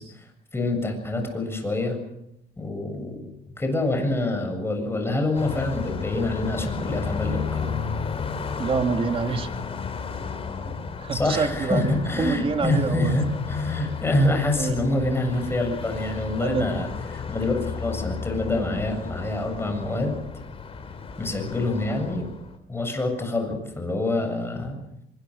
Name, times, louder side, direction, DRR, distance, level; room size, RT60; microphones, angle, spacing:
voice 1, 0.0-2.0 2.6-3.3 3.6-7.7 11.1-20.2 21.2-22.3 22.7-24.8, left 2 dB, 15° left, 4 dB, 7.6 m, -26 dB
Car passing by, 5.3-22.6, left 5 dB, 35° left, 3.7 m, -33 dB
voice 2, 8.6-9.5 10.7-13.2 14.6-14.8 16.4-16.7, right 5 dB, 35° right, 6 dB, 2.8 m, -27 dB
25.0 x 22.0 x 6.6 m, 0.79 s
cardioid pair, 110°, 17 cm